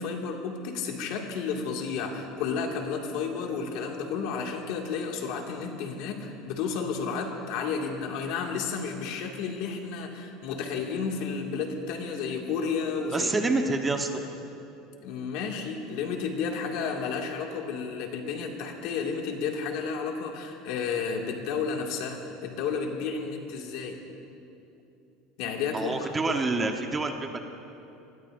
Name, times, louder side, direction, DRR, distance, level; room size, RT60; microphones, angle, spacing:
voice 1, 0.0-13.3 15.0-24.0 25.4-26.3, left 5 dB, 65° left, 1 dB, 2.1 m, -32 dB
voice 2, 13.1-14.1 25.7-27.4, right 3 dB, 15° right, 4 dB, 1.0 m, -27 dB
26.5 x 20.5 x 2.6 m, 2.8 s
supercardioid pair, 140°, 0 cm